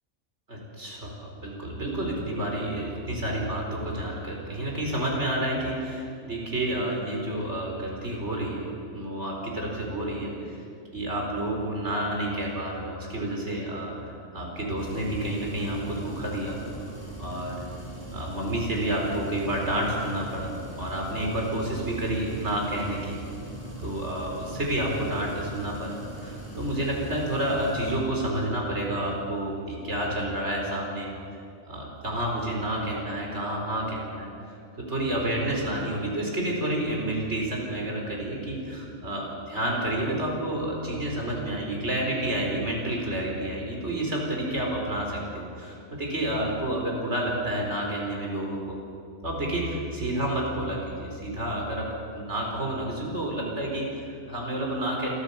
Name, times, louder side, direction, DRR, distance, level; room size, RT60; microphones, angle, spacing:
voice 1, 0.5-10.6 10.9-16.6 17.2-17.6 18.1-23.1 23.8-31.1 31.7-34.3 34.8-48.8 49.2-51.9 52.1-55.1, right 1 dB, 55° right, -1 dB, 4.8 m, -30 dB
sound 1, 14.8-27.9, right 2 dB, 20° left, 7.3 m, -41 dB
27.5 x 14.0 x 7.2 m, 2.5 s
omnidirectional pair, 1.4 m